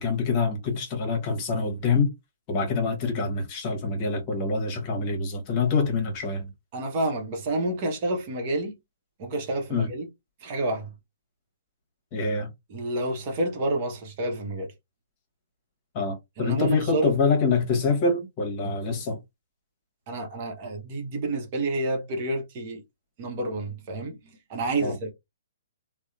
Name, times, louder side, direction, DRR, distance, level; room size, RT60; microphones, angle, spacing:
voice 1, 0.0-2.1 2.5-6.5 9.7-9.9 12.1-12.5 15.9-19.2 24.8-25.0, left 4 dB, 35° left, 1.0 m, -25 dB
voice 2, 6.7-8.8 9.2-10.1 10.4-10.9 12.7-14.7 16.4-17.1 20.1-22.8 23.2-25.1, right 2 dB, 40° right, 0.8 m, -29 dB
2.8 x 2.1 x 2.4 m
figure-of-eight pair, 130°, 0 cm